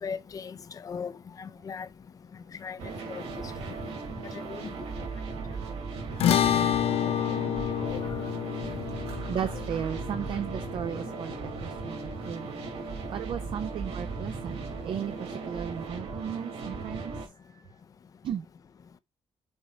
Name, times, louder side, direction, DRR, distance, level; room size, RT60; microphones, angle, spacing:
voice 1, 0.0-0.6 0.8-1.1 1.4-1.9 2.6-2.8 3.1-3.3 4.3-4.7 7.8-8.0, left 6 dB, 35° left, 0.6 m, -37 dB
sound 1, 2.8-17.3, right 4 dB, 90° right, 3.0 m, -37 dB
sound 2, 6.2-12.7, left 10 dB, 80° left, 0.7 m, -29 dB
voice 2, 9.3-11.3 11.6-17.7 18.2-18.5, right 8 dB, 55° right, 0.6 m, -35 dB
7.1 x 4.0 x 4.5 m
wide cardioid pair, 165°, 10 cm